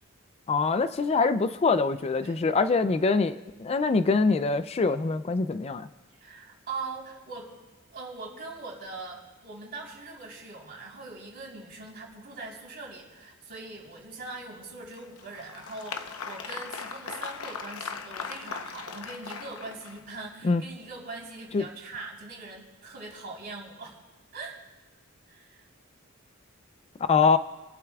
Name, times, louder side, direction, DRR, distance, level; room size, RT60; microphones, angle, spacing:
voice 1, 0.5-5.9 20.4-20.6 21.5-21.6 27.1-27.4, left 4 dB, 30° left, 11 dB, 0.3 m, -24 dB
voice 2, 6.1-7.5 7.9-24.0 24.3-24.6 25.3-25.7, right 3 dB, 50° right, -3 dB, 3.8 m, -41 dB
Applause, 14.9-20.2, left 5 dB, 80° left, 0.9 m, -39 dB
29.5 x 11.5 x 2.4 m, 1.1 s
head